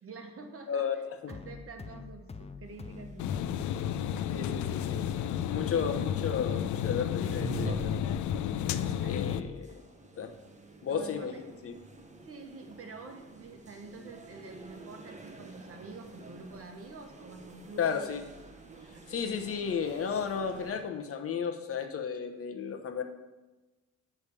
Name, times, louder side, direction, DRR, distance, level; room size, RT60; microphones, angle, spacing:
voice 1, 0.0-4.1 8.7-9.2 10.9-11.3 12.3-18.1 18.8-19.4, right 3 dB, 50° right, 4 dB, 1.2 m, -47 dB
sound 1, 1.3-9.8, left 4 dB, 20° left, 0.5 m, -45 dB
sound 2, 2.6-20.8, right 1 dB, 25° right, 1.1 m, -47 dB
sound 3, 3.2-9.4, left 10 dB, 75° left, 0.5 m, -32 dB
voice 2, 4.3-5.0 5.5-8.0 9.0-9.8 10.2-10.3 10.8-11.3 11.6-11.8 17.8-18.2 19.1-23.0, left 6 dB, 50° left, 5 dB, 1.0 m, -33 dB
9.8 x 3.5 x 6.9 m, 1.1 s
cardioid pair, 90°, 30 cm